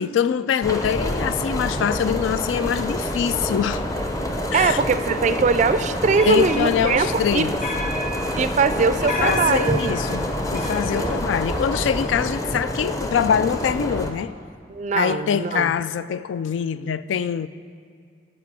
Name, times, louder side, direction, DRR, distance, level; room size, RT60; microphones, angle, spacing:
voice 1, 0.0-3.9 4.5-4.8 6.3-7.6 9.0-14.3 14.9-17.5, left 8 dB, 90° left, 0.3 m, -24 dB
sound 1, 0.6-14.1, equal, 20° left, 0.6 m, -27 dB
voice 2, 4.5-7.5 8.4-9.9 10.9-11.2 14.7-15.7, right 5 dB, 40° right, 0.3 m, -21 dB
sound 2, 6.1-12.3, left 1 dB, 40° left, 1.1 m, -33 dB
13.5 x 5.0 x 6.1 m
head